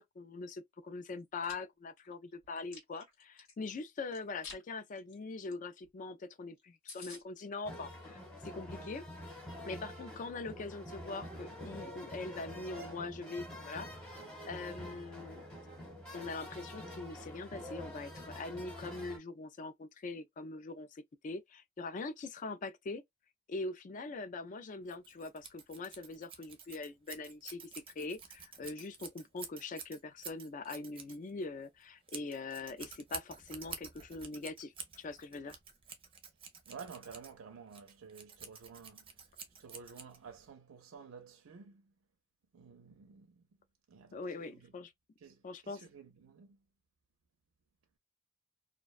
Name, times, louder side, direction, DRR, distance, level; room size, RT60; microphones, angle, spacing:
voice 1, 0.0-9.0 9.6-15.4 16.1-23.0 23.5-35.6 44.1-44.9 45.4-45.8, left 3 dB, 40° left, 0.3 m, -43 dB
Chewing mastication, 1.2-1.5 2.0-3.5 4.1-4.6 4.9-5.1 5.5-5.6 5.8-5.9 6.3-6.4 6.6-6.7 6.9-7.2, left 4 dB, 80° left, 1.3 m, -50 dB
sound 1, 7.6-19.2, equal, 5° left, 0.9 m, -47 dB
Scissors, 24.9-40.5, right 6 dB, 25° right, 0.5 m, -50 dB
voice 2, 36.7-39.0 39.6-41.9 42.5-43.4 43.9-44.2 44.5-44.7 45.2-45.4 45.6-46.6, right 5 dB, 75° right, 0.5 m, -52 dB
2.4 x 2.1 x 2.3 m
head